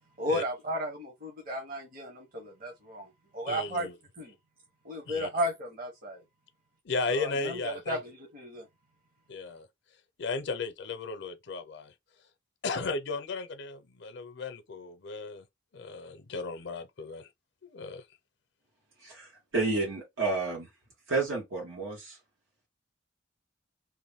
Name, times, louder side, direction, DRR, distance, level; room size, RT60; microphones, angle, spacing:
voice 1, 0.2-3.9 4.2-4.3 4.8-6.2 7.1-8.7, equal, 50° right, 1.2 m, -34 dB
voice 2, 3.5-3.9 5.1-5.3 6.8-8.0 9.3-9.7 10.2-11.9 12.6-15.5 15.7-17.3 17.6-18.0, left 4 dB, 60° left, 0.6 m, -35 dB
voice 3, 19.5-20.7 21.1-22.2, right 3 dB, 90° right, 1.6 m, -30 dB
3.0 x 2.5 x 3.5 m
head